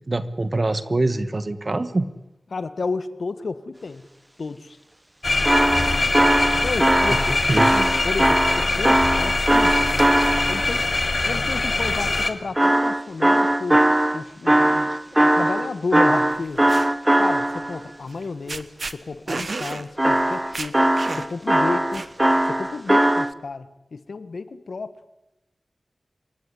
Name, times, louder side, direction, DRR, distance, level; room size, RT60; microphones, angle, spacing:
voice 1, 0.1-2.1 7.5-7.9 14.9-15.0, right 2 dB, 40° right, 13 dB, 1.4 m, -24 dB
voice 2, 2.5-4.0 4.4-4.8 6.6-7.5 8.0-9.9 10.5-10.9 11.2-13.9 14.1-16.6 17.2-20.8 21.2-22.1 22.5-24.9, left 4 dB, 80° left, 13 dB, 1.4 m, -31 dB
sound 1, 5.2-12.3, left 2 dB, 45° left, 2.3 m, -23 dB
sound 2, 5.5-10.7 12.6-17.8 20.0-23.3, right 1 dB, 15° right, 1.0 m, -20 dB
sound 3, 16.3-16.9 18.1-18.2 18.5-18.9 19.3-19.8 20.2-20.3 20.5-21.4 21.9-22.4, right 3 dB, 60° right, 1.3 m, -31 dB
28.0 x 16.5 x 9.9 m, 0.95 s
wide cardioid pair, 80°, 0 cm